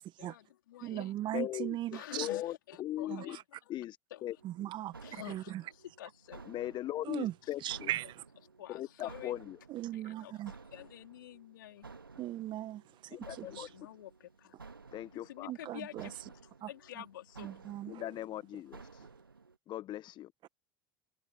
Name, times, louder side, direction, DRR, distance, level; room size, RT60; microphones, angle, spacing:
voice 1, 0.2-1.1 1.9-3.7 4.1-4.4 5.0-6.4 7.4-7.8 8.6-9.3 9.9-11.8 13.4-14.6 15.1-17.5, left 13 dB, 70° left, 4.2 m, -49 dB
voice 2, 0.8-2.3 3.1-3.4 4.4-5.6 7.0-7.3 7.6-8.2 9.7-10.5 12.2-13.7 15.5-16.1 16.6-16.7 17.4-18.0, right 14 dB, 45° right, 1.6 m, -38 dB
voice 3, 1.3-1.8 2.1-3.4 3.7-4.0 4.2-4.3 6.5-7.9 8.7-9.6 13.1-13.7 14.9-15.5 17.9-19.1 19.7-20.3, left 13 dB, 40° left, 1.2 m, -39 dB
sound 1, 4.4-19.6, right 4 dB, 90° right, 2.1 m, -55 dB
figure-of-eight pair, 75°, 11 cm